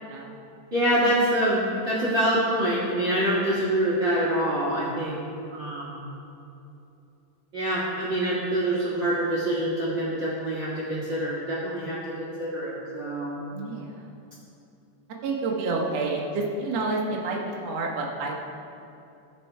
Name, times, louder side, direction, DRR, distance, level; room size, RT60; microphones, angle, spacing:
voice 1, 0.0-0.4 5.3-5.5 13.5-14.1 15.2-18.3, right 3 dB, 85° right, -2 dB, 1.4 m, -29 dB
voice 2, 0.7-5.2 5.5-6.0 7.5-13.4, right 1 dB, 50° right, -7 dB, 1.3 m, -25 dB
15.5 x 6.1 x 4.6 m, 2.7 s
omnidirectional pair, 5.0 m